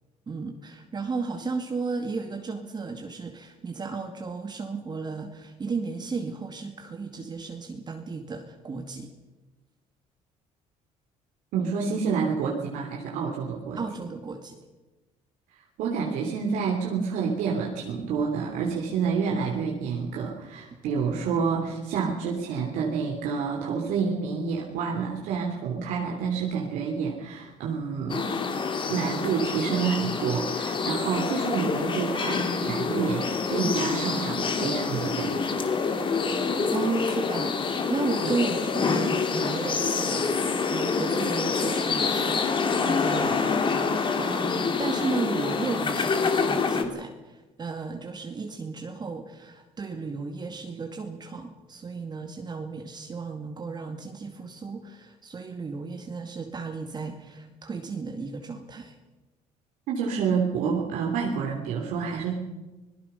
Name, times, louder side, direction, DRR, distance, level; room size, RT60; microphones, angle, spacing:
voice 1, 0.3-9.1 13.8-14.6 36.7-37.6 37.9-58.9, right 4 dB, 30° right, 4 dB, 2.2 m, -34 dB
voice 2, 11.5-13.8 15.8-28.3 28.9-35.4 38.2-38.3 59.9-62.3, right 6 dB, 80° right, -1 dB, 3.1 m, -28 dB
sound 1, 28.1-46.8, left 4 dB, 35° left, 2.5 m, -27 dB
26.0 x 18.5 x 5.6 m, 1.1 s
cardioid pair, 105°, 14 cm